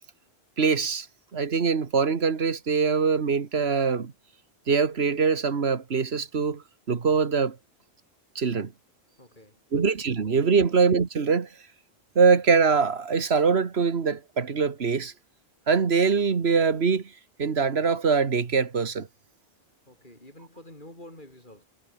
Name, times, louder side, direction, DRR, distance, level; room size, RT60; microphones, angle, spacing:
voice 1, 0.6-1.1 1.3-4.1 4.7-7.6 8.4-8.7 9.7-11.5 12.2-15.1 15.7-17.1 17.4-19.1, right 5 dB, 80° right, 1.8 m, -23 dB
voice 2, 9.2-9.9 10.6-10.8 19.9-21.6, left 1 dB, 50° left, 7.2 m, -48 dB
omnidirectional pair, 1.1 m